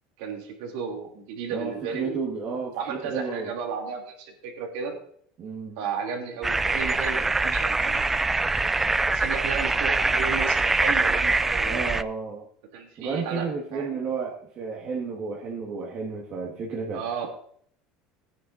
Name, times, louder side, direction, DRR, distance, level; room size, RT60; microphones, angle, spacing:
voice 1, 0.2-2.2 2.7-4.9 5.8-8.2 8.6-8.7 9.1-11.8 12.7-14.0 16.9-17.3, right 6 dB, 75° right, 1 dB, 3.1 m, -34 dB
voice 2, 1.5-3.5 5.4-5.8 11.6-12.5 13.0-17.3, right 5 dB, 40° right, -2 dB, 1.8 m, -32 dB
sound 1, 6.4-12.0, right 3 dB, 10° right, 0.3 m, -24 dB
18.0 x 9.7 x 2.7 m, 0.62 s
cardioid pair, 150°, 3 cm